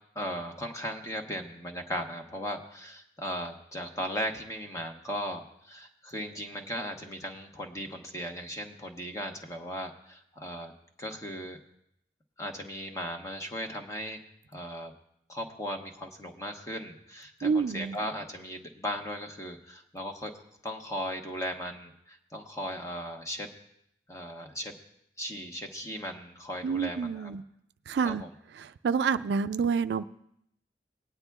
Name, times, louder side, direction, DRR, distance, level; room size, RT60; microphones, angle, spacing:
voice 1, 0.1-10.7 11.0-11.6 12.4-14.2 14.5-14.9 15.3-20.3 20.6-23.5 24.1-24.8 25.2-27.3 28.0-28.3, equal, 20° left, 3 dB, 1.0 m, -37 dB
voice 2, 17.4-18.0 26.6-27.4 27.9-28.2 28.5-30.0, right 5 dB, 65° right, 12 dB, 0.3 m, -28 dB
19.5 x 9.7 x 2.3 m, 0.76 s
head